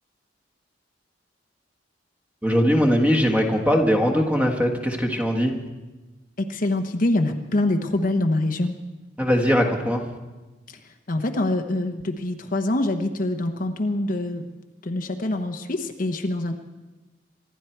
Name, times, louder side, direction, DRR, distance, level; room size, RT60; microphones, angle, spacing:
voice 1, 2.4-5.6 9.2-10.0, equal, 10° right, 2 dB, 1.5 m, -20 dB
voice 2, 6.4-8.7 10.7-10.8 11.1-14.4 14.8-16.5, left 1 dB, 45° left, 6 dB, 0.9 m, -25 dB
25.0 x 11.5 x 4.6 m, 1.2 s
head